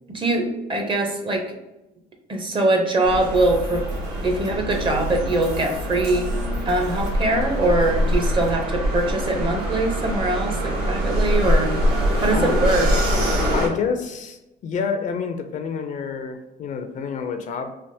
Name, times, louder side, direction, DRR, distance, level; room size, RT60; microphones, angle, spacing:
voice 1, 0.1-1.5 2.3-3.9 4.2-6.3 6.7-11.7 12.2-12.9, right 2 dB, 30° right, 3 dB, 0.6 m, -22 dB
sound 1, 3.0-13.7, equal, 75° right, 1.1 m, -24 dB
sound 2, 3.3-8.6, left 3 dB, 45° right, 1.2 m, -40 dB
voice 2, 12.3-12.9 13.5-17.7, left 6 dB, 50° left, 7 dB, 0.4 m, -28 dB
3.3 x 2.4 x 2.6 m, 0.97 s
cardioid pair, 110°, 17 cm